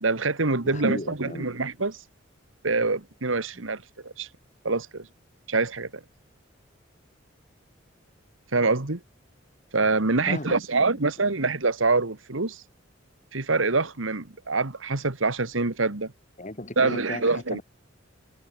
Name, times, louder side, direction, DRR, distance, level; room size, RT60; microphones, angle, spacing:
voice 1, 0.0-2.0 2.6-4.3 4.6-5.1 5.5-5.9 8.5-9.0 9.7-12.6 13.3-16.1 16.8-17.6, right 3 dB, 90° right, 1.9 m, -25 dB
voice 2, 0.6-1.6 3.5-3.6 10.3-11.0 16.4-17.6, left 1 dB, 40° left, 4.6 m, -36 dB
head